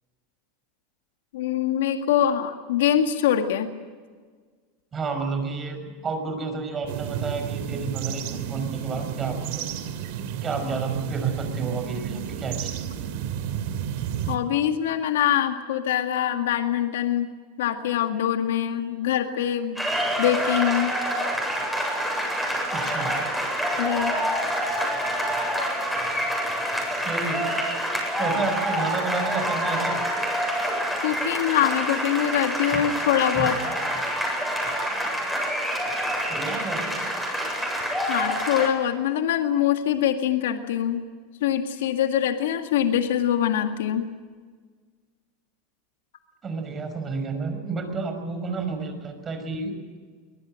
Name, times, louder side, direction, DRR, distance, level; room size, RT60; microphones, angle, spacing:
voice 1, 1.3-3.7 14.3-17.3 17.6-19.8 20.2-21.0 23.8-24.2 31.0-33.6 38.1-41.1 41.4-44.1, left 10 dB, 85° left, 6 dB, 2.0 m, -24 dB
voice 2, 4.9-9.6 10.4-12.7 22.7-23.2 27.0-27.5 28.2-30.0 32.7-32.8 33.3-33.5 36.3-37.0 46.4-49.8, right 4 dB, 25° right, 7 dB, 5.6 m, -30 dB
sound 1, 6.9-14.4, right 9 dB, 65° right, 2.6 m, -31 dB
sound 2, 19.8-38.7, equal, ahead, 8.0 m, -27 dB
23.5 x 19.5 x 7.7 m, 1.5 s
supercardioid pair, 125°, 0 cm